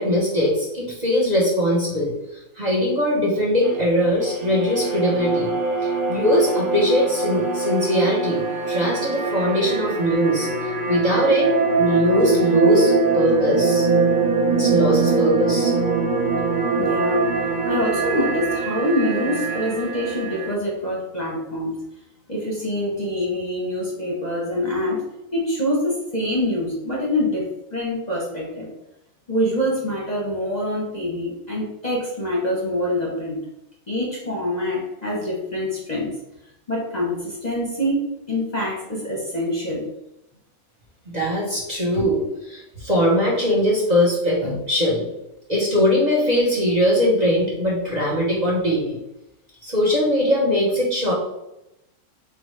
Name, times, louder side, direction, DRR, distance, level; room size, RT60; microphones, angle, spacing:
voice 1, 0.0-2.1 2.5-5.5 5.8-10.5 10.9-13.9 14.6-15.7 41.1-45.0 45.5-49.0 49.6-51.1, equal, 35° right, -4 dB, 0.9 m, -21 dB
sound 1, 3.6-20.5, right 4 dB, 60° right, 0.4 m, -23 dB
voice 2, 16.5-17.3 17.6-21.8 22.3-25.0 25.3-28.7 29.3-33.4 33.9-36.1 36.7-38.0 38.3-39.9, left 1 dB, 35° left, -3 dB, 0.8 m, -25 dB
3.9 x 3.3 x 3.1 m, 0.89 s
omnidirectional pair, 1.5 m